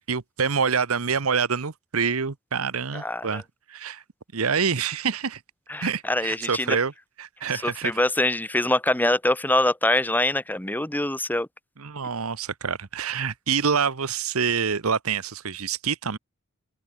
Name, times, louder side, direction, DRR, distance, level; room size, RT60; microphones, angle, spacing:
voice 1, 0.1-3.4 3.7-4.0 4.3-5.4 5.8-6.9 7.2-8.0 11.8-16.2, right 6 dB, 75° right, 1.0 m, -26 dB
voice 2, 2.9-3.4 5.7-6.8 7.6-11.5, left 1 dB, 10° left, 1.3 m, -24 dB
head